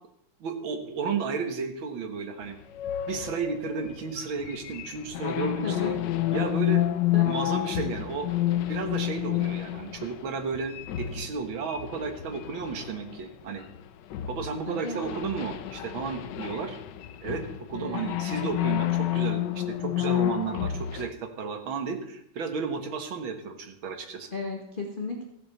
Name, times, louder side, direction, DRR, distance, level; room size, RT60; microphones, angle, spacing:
voice 1, 0.4-2.6 3.1-6.0 6.3-6.8 7.2-8.3 8.7-13.7 14.3-16.8 17.2-24.3, right 5 dB, 70° right, 6 dB, 2.2 m, -33 dB
sound 1, 2.7-13.8 14.1-21.1, left 13 dB, 70° left, 1.2 m, -30 dB
voice 2, 5.6-5.9 7.1-7.3 14.7-15.0 17.7-18.0 24.3-25.2, left 3 dB, 25° left, -1 dB, 1.5 m, -34 dB
15.5 x 7.0 x 7.0 m, 0.75 s
omnidirectional pair, 2.3 m